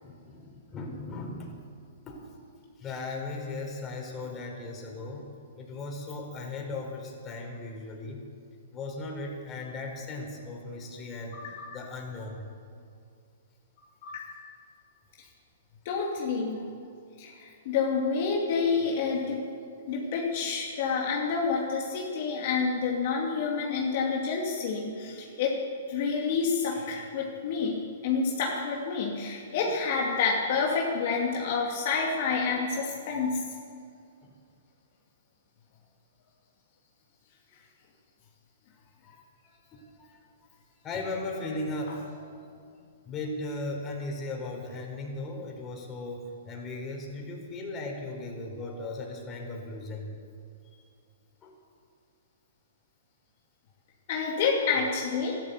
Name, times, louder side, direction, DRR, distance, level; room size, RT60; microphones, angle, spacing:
voice 1, 0.0-1.5 2.1-2.2 2.8-8.2 8.7-11.4 11.7-12.4 15.2-15.3 34.2-34.3 39.0-40.2 40.8-42.6 43.0-50.1 51.4-51.5, left 2 dB, 25° left, 0 dB, 4.0 m, -37 dB
voice 2, 11.3-11.7 14.0-14.4 15.8-16.7 17.2-19.5 19.9-25.6 25.9-33.4 54.1-55.4, left 5 dB, 55° left, -2 dB, 2.5 m, -28 dB
13.5 x 12.0 x 8.3 m, 2.4 s
hypercardioid pair, 130°, 0 cm